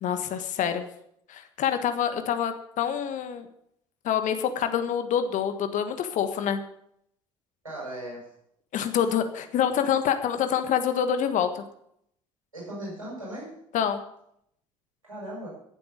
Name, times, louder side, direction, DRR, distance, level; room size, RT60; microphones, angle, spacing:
voice 1, 0.0-0.9 1.3-3.5 4.0-6.6 8.7-11.6 13.7-14.0, left 8 dB, 45° left, 9 dB, 1.5 m, -26 dB
voice 2, 7.6-8.3 12.5-13.6 15.0-15.5, right 1 dB, 85° right, -5 dB, 7.3 m, -37 dB
14.5 x 7.8 x 7.2 m, 0.73 s
figure-of-eight pair, 60°, 17 cm